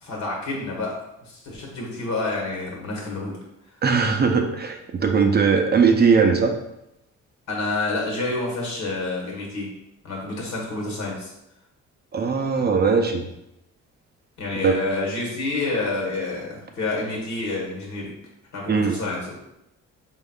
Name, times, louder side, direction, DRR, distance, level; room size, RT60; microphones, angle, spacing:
voice 1, 0.0-3.4 7.5-9.7 10.0-11.3 14.4-18.1 18.5-19.2, left 2 dB, 70° left, -2 dB, 1.4 m, -28 dB
voice 2, 3.8-6.5 12.1-13.2 14.6-14.7 18.7-19.0, right 5 dB, 35° right, 4 dB, 0.4 m, -19 dB
4.2 x 3.6 x 2.3 m, 0.86 s
cardioid pair, 90°, 30 cm